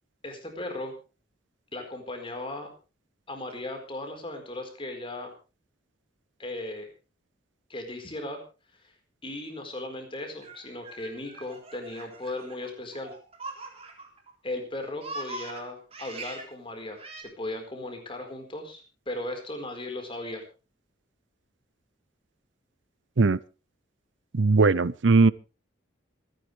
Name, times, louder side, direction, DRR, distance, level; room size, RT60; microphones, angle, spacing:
voice 1, 0.2-1.0 1.7-2.7 3.3-5.3 6.4-6.9 7.7-8.4 8.8-8.9 9.2-13.1 14.4-20.4, left 1 dB, 25° left, 4.4 m, -37 dB
Laughter, 10.2-14.3 14.6-16.5 17.0-17.2, right 2 dB, 30° right, 3.7 m, -42 dB
voice 2, 24.3-25.3, right 3 dB, 70° right, 0.6 m, -19 dB
26.5 x 10.5 x 3.4 m
head